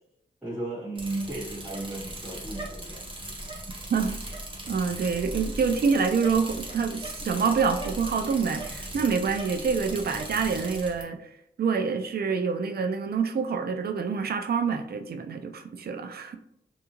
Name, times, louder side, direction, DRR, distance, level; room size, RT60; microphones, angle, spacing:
voice 1, 0.4-3.0, right 2 dB, 5° right, -10 dB, 1.5 m, -35 dB
Bicycle, 0.9-11.0, right 1 dB, 25° right, 0.8 m, -38 dB
voice 2, 4.7-11.3 11.6-16.3, right 5 dB, 55° right, 6 dB, 0.4 m, -26 dB
2.7 x 2.4 x 2.8 m, 0.77 s
cardioid pair, 50°, 20 cm